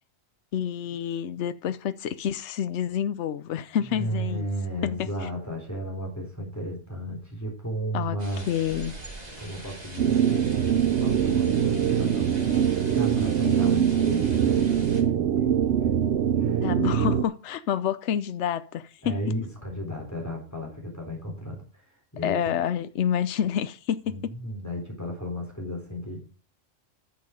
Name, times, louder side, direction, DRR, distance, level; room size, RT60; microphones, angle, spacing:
voice 1, 0.5-4.5 4.9-5.1 7.9-8.2 8.5-8.9 16.6-19.2 22.2-24.3, left 9 dB, 70° left, 1.0 m, -28 dB
voice 2, 3.8-8.5 9.4-15.5 15.8-15.9 16.4-16.7 19.0-21.8 22.1-22.4 24.1-26.2, equal, 15° left, 3.7 m, -34 dB
sound 1, 8.2-15.0, right 2 dB, 35° right, 2.6 m, -42 dB
sound 2, 10.0-17.2, right 9 dB, 65° right, 0.9 m, -23 dB
10.5 x 6.7 x 5.0 m
omnidirectional pair, 1.3 m